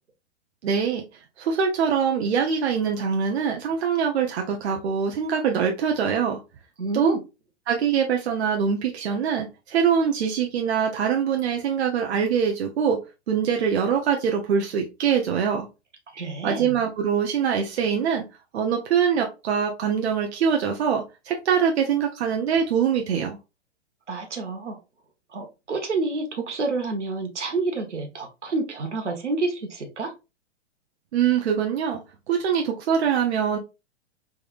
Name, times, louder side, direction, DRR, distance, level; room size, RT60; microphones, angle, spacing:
voice 1, 0.6-1.0 1.4-6.4 6.9-7.1 7.7-13.0 13.3-15.7 16.4-18.2 18.5-23.4 31.1-32.0 32.3-33.6, right 7 dB, 65° right, 0.8 m, -23 dB
voice 2, 6.8-7.2 16.1-16.6 24.1-24.8 25.3-30.1, right 3 dB, 90° right, 1.2 m, -28 dB
3.5 x 3.4 x 2.4 m
hypercardioid pair, 115°, 34 cm